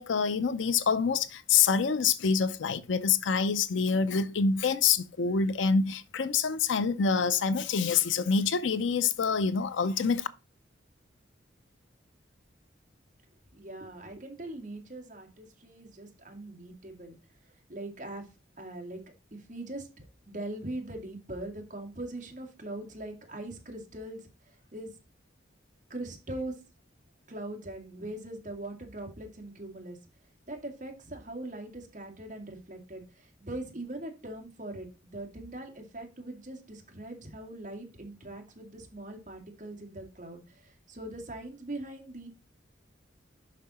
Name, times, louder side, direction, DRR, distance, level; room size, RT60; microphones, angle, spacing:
voice 1, 0.0-10.3, left 5 dB, 75° left, 0.5 m, -26 dB
voice 2, 13.5-17.2 17.7-18.2 18.6-19.0 19.3-24.2 24.7-24.9 25.9-26.5 27.3-30.0 30.5-42.3, right 1 dB, 40° right, 2.0 m, -41 dB
7.4 x 5.6 x 4.1 m
head